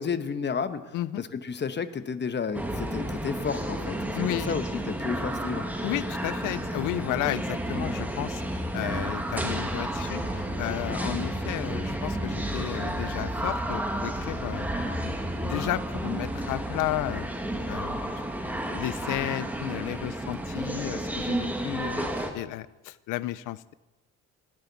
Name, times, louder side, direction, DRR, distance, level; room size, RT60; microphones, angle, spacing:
voice 1, 0.0-4.0 4.3-5.7, left 6 dB, 35° left, 11 dB, 1.1 m, -32 dB
sound 1, 2.5-22.3, right 1 dB, 5° right, 1.7 m, -31 dB
voice 2, 4.1-4.5 5.8-14.7 15.0-17.3 17.7-18.0 18.5-23.7, left 15 dB, 90° left, 18 dB, 0.6 m, -33 dB
20.0 x 11.5 x 4.1 m, 1.1 s
cardioid pair, 90°, 30 cm